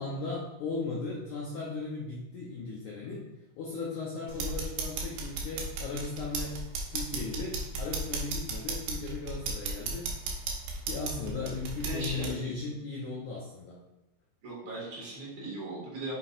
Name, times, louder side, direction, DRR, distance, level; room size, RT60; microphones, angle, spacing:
voice 1, 0.0-3.2 3.6-6.6 6.9-10.1 10.9-13.8, left 3 dB, 75° left, -4 dB, 1.8 m, -37 dB
sound 1, 4.3-12.3, right 3 dB, 80° right, 3.1 m, -35 dB
voice 2, 11.8-12.3 14.4-16.1, right 1 dB, 55° right, -6 dB, 3.2 m, -38 dB
8.5 x 5.5 x 2.5 m, 0.93 s
omnidirectional pair, 4.6 m